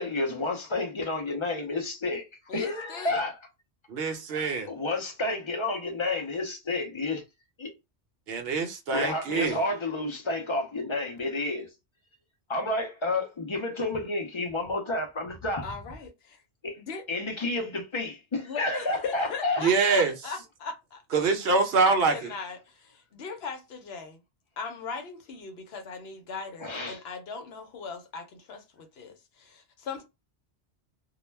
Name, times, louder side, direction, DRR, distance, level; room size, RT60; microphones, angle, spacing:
voice 1, 0.0-2.3 2.5-3.3 4.7-7.2 7.6-7.7 8.9-11.7 12.5-15.7 16.6-16.8 17.1-19.6 26.6-27.0, left 2 dB, 45° left, 0.4 m, -30 dB
voice 2, 2.5-3.2 8.9-9.6 15.6-16.4 16.8-17.0 18.4-21.0 21.9-24.2 24.6-30.0, left 5 dB, 65° left, 0.8 m, -38 dB
voice 3, 3.9-4.7 8.3-9.6 19.6-20.1 21.1-22.1, right 4 dB, 65° right, 0.8 m, -24 dB
2.2 x 2.1 x 3.2 m
omnidirectional pair, 1.2 m